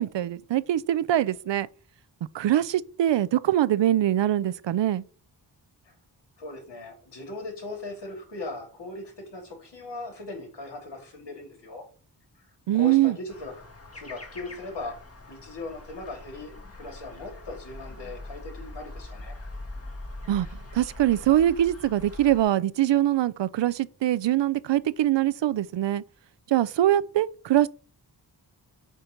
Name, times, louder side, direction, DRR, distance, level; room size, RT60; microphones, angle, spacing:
voice 1, 0.0-1.7 2.3-5.0 12.7-13.1 20.3-20.5 20.7-26.0 26.5-27.7, right 12 dB, 75° right, 0.5 m, -23 dB
voice 2, 6.4-11.9 12.4-12.5 12.7-13.6 13.9-19.4, left 2 dB, 65° left, 2.8 m, -39 dB
sound 1, 13.3-22.4, left 2 dB, 35° left, 1.6 m, -42 dB
8.1 x 2.8 x 5.1 m
wide cardioid pair, 85°, 44 cm